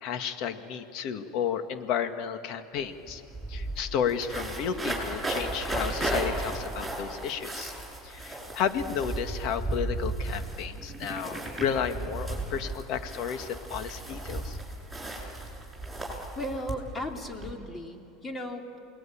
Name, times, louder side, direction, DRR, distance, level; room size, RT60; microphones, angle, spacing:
voice 1, 0.0-3.2 3.5-7.7 8.0-14.6, left 8 dB, 55° left, 8 dB, 1.9 m, -32 dB
sound 1, 2.8-2.9 3.1-17.5, right 2 dB, 5° left, 7.6 m, -35 dB
voice 2, 16.3-18.8, equal, 20° left, 3 dB, 3.2 m, -36 dB
28.5 x 20.5 x 8.9 m, 2.9 s
supercardioid pair, 115°, 0 cm